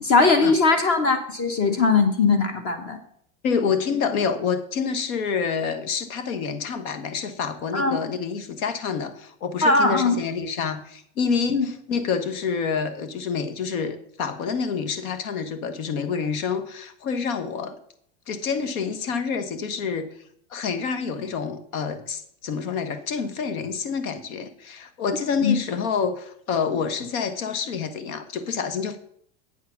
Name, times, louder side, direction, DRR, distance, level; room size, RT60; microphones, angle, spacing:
voice 1, 0.0-3.0 7.7-8.0 9.6-10.2 11.5-11.7 25.4-25.6, left 4 dB, 35° left, 7 dB, 1.0 m, -20 dB
voice 2, 3.4-17.8 18.3-20.1 20.5-29.0, left 6 dB, 80° left, 10 dB, 1.3 m, -27 dB
8.3 x 4.8 x 6.9 m, 0.69 s
supercardioid pair, 135°, 42 cm